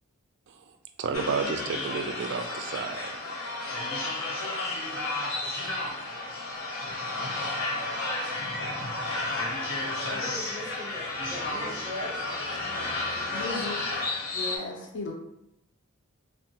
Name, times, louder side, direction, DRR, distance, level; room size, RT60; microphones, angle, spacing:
voice 1, 1.0-3.1, right 5 dB, 55° right, 6 dB, 0.3 m, -31 dB
sound 1, 1.1-14.6, left 2 dB, 70° left, 0.8 m, -32 dB
voice 2, 10.1-13.8, left 1 dB, 10° right, -2 dB, 0.7 m, -41 dB
voice 3, 13.3-13.8 14.3-15.1, left 3 dB, 55° left, 0 dB, 0.4 m, -36 dB
3.5 x 2.2 x 2.7 m, 0.83 s
head